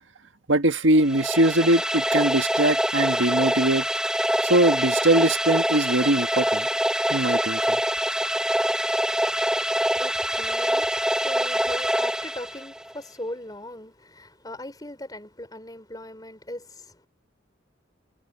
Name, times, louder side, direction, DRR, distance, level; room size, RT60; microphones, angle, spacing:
voice 1, 0.5-3.9 4.4-6.7 7.1-7.8, right 1 dB, 90° right, 1.6 m, -21 dB
sound 1, 1.0-12.9, equal, 5° right, 1.7 m, -25 dB
voice 2, 8.2-17.1, left 1 dB, 20° left, 5.0 m, -40 dB
head